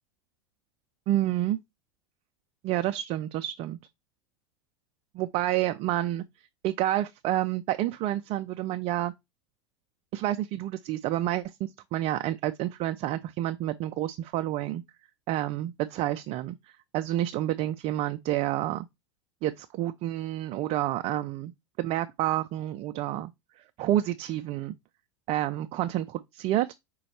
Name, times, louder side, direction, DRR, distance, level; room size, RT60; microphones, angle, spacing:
voice 1, 1.1-1.6 2.6-3.8 5.1-6.2 6.6-9.1 10.1-14.8 15.3-16.6 16.9-18.9 19.4-21.5 21.8-23.3 23.8-24.7 25.3-26.7, right 13 dB, 40° right, 0.4 m, -29 dB
5.1 x 2.3 x 4.0 m
hypercardioid pair, 90°, 15 cm